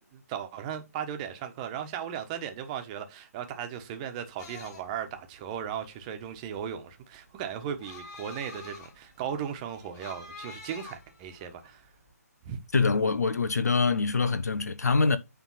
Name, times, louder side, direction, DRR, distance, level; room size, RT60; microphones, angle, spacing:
voice 1, 0.0-11.8 12.4-12.6, right 8 dB, 25° right, 1.3 m, -37 dB
sound 1, 4.4-12.1, left 4 dB, 25° left, 3.7 m, -48 dB
voice 2, 12.7-15.2, left 4 dB, 75° left, 1.1 m, -24 dB
9.1 x 3.7 x 5.7 m
figure-of-eight pair, 145°, 9 cm